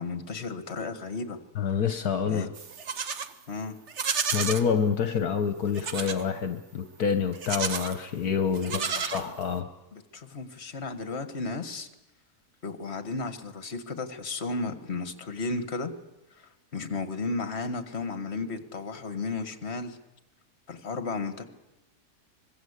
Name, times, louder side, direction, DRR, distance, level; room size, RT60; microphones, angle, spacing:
voice 1, 0.0-1.4 2.3-2.5 3.5-3.8 8.7-9.3 9.9-11.9 12.6-15.9 16.7-20.0 20.7-21.4, left 3 dB, 40° left, 10 dB, 1.9 m, -34 dB
voice 2, 1.6-2.5 4.3-9.7, left 7 dB, 70° left, 9 dB, 1.5 m, -27 dB
Livestock farm animals working animals, 2.5-3.3 3.9-4.7 5.7-6.2 7.3-8.0 8.5-9.6, right 6 dB, 50° right, 1.3 m, -31 dB
25.0 x 22.0 x 8.3 m, 0.97 s
omnidirectional pair, 1.7 m